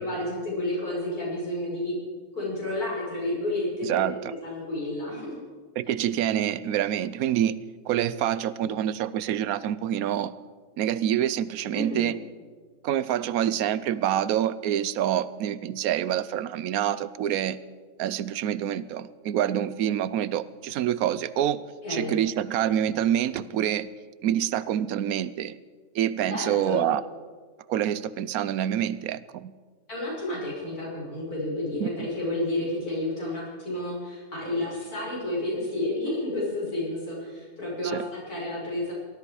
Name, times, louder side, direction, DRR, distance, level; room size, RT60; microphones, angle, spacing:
voice 1, 0.0-1.9 2.3-5.3 8.6-8.7 11.7-12.1 21.8-22.1 26.3-26.8 29.9-38.9, left 1 dB, 90° left, -5 dB, 6.3 m, -31 dB
voice 2, 3.8-4.3 5.8-7.6 7.9-10.3 10.8-12.2 12.8-17.6 18.0-21.6 21.9-23.9 24.2-25.6 25.9-27.0 27.7-29.5 31.8-32.1 37.9-38.0, right 11 dB, 75° right, 17 dB, 1.0 m, -26 dB
18.0 x 13.0 x 4.8 m, 1.5 s
omnidirectional pair, 1.6 m